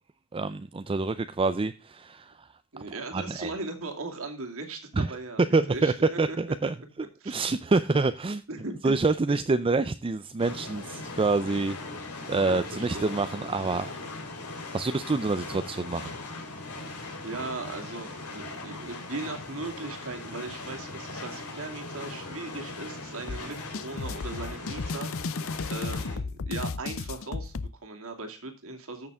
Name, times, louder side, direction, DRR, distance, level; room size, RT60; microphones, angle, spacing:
voice 1, 0.3-2.5 3.1-3.5 4.9-5.1 5.5-6.7 7.3-8.4 8.8-11.8 12.3-13.9 14.7-16.1, right 3 dB, 25° right, 0.4 m, -26 dB
voice 2, 2.7-6.4 7.2-7.4 8.5-9.4 12.5-13.2 14.0-14.3 16.9-25.4 25.7-29.1, right 3 dB, 65° right, 2.5 m, -38 dB
sound 1, 10.4-26.2, left 2 dB, 80° left, 4.0 m, -39 dB
sound 2, 23.3-27.7, left 4 dB, 65° left, 0.6 m, -34 dB
14.5 x 6.7 x 3.5 m
head